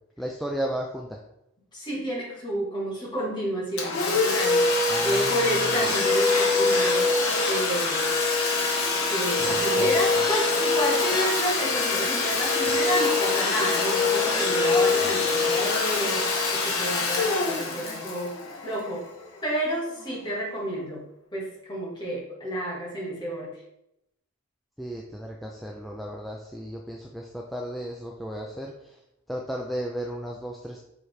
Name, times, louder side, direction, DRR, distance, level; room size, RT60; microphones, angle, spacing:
voice 1, 0.2-1.2 4.9-5.8 9.4-10.0 24.8-29.0 29.3-30.8, equal, ahead, -1 dB, 0.4 m, -34 dB
voice 2, 1.7-8.1 9.1-18.4 18.6-19.1 19.4-21.0 21.3-23.6, equal, 20° left, -5 dB, 1.8 m, -30 dB
Domestic sounds home sounds, 3.8-19.2, left 3 dB, 85° left, 1.3 m, -24 dB
6.5 x 4.4 x 3.3 m, 0.85 s
head